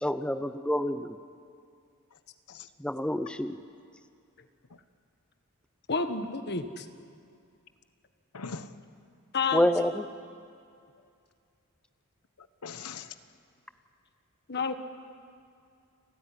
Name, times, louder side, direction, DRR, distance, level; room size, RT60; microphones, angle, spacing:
voice 1, 0.0-1.2 2.8-3.6 9.5-10.0, left 1 dB, 5° left, 10 dB, 0.6 m, -27 dB
voice 2, 5.9-6.8 9.3-9.7 14.5-14.7, left 4 dB, 50° left, 8 dB, 1.5 m, -29 dB
voice 3, 8.3-8.7 12.4-13.1 14.6-14.7, left 5 dB, 80° left, 11 dB, 1.1 m, -41 dB
29.5 x 14.5 x 10.0 m, 2.4 s
head